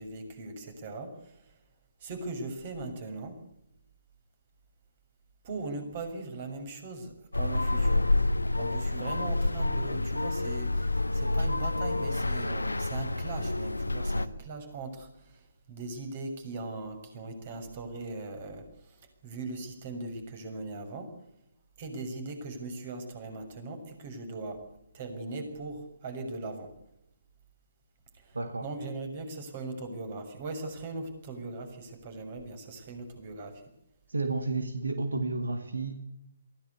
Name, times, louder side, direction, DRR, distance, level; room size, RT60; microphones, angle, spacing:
voice 1, 0.0-1.5 2.0-3.4 5.4-21.1 21.8-24.6 24.9-26.7 28.1-33.6, right 3 dB, 40° right, 7 dB, 6.9 m, -40 dB
sound 1, 7.3-14.3, left 2 dB, 90° left, 1.3 m, -28 dB
voice 2, 28.3-28.7 34.1-36.0, right 3 dB, 80° right, 9 dB, 2.3 m, -31 dB
23.0 x 17.0 x 8.3 m, 0.83 s
figure-of-eight pair, 140°, 0 cm